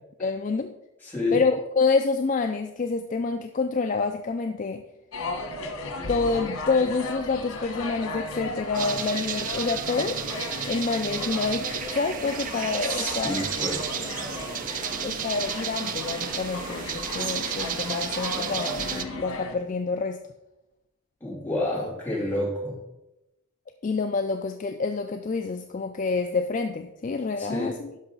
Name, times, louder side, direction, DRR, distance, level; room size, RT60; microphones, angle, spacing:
voice 1, 0.2-0.7 1.3-4.9 6.1-10.2 10.7-13.5 15.0-20.2 23.8-27.9, left 4 dB, 35° left, 7 dB, 0.3 m, -27 dB
voice 2, 1.0-1.4 12.9-14.1 21.2-22.8 27.4-27.7, left 2 dB, 10° left, -5 dB, 2.6 m, -29 dB
sound 1, 5.1-19.5, left 2 dB, 90° left, 1.4 m, -35 dB
sound 2, 8.7-19.0, right 8 dB, 40° right, 0.4 m, -32 dB
11.5 x 5.6 x 3.9 m, 0.96 s
head